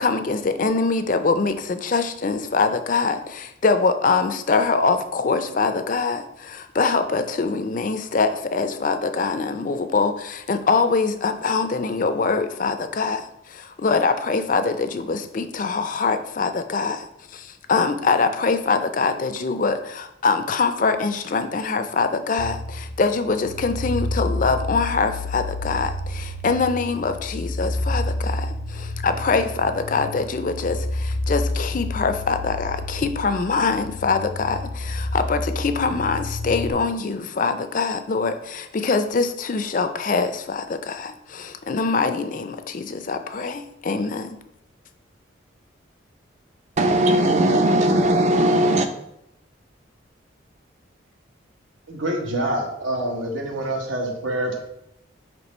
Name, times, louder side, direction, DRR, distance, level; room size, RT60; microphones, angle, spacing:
voice 1, 0.0-44.4, left 4 dB, 40° left, 9 dB, 0.4 m, -24 dB
tense-fluctuating-drone, 22.4-36.7, left 2 dB, 85° left, 0.6 m, -29 dB
voice 2, 46.8-48.9, right 1 dB, 35° right, 6 dB, 0.6 m, -18 dB
voice 3, 51.9-54.6, right 1 dB, 80° right, 1 dB, 1.3 m, -26 dB
6.0 x 3.1 x 5.2 m, 0.82 s
head